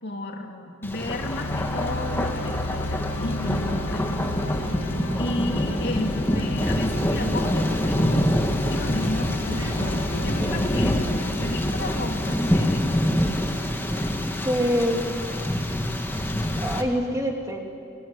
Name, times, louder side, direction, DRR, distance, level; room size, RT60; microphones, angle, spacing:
voice 1, 0.0-4.1 5.1-9.4 9.9-12.9, left 2 dB, 55° left, 2 dB, 2.7 m, -33 dB
Thunder, 0.8-16.8, equal, 10° left, 1.9 m, -26 dB
sound 1, 1.0-13.0, left 2 dB, 75° left, 1.3 m, -32 dB
voice 2, 9.5-9.9 10.4-10.7 14.4-15.0 16.6-17.7, equal, 15° right, 1 dB, 2.7 m, -26 dB
23.0 x 22.0 x 9.8 m, 2.4 s
head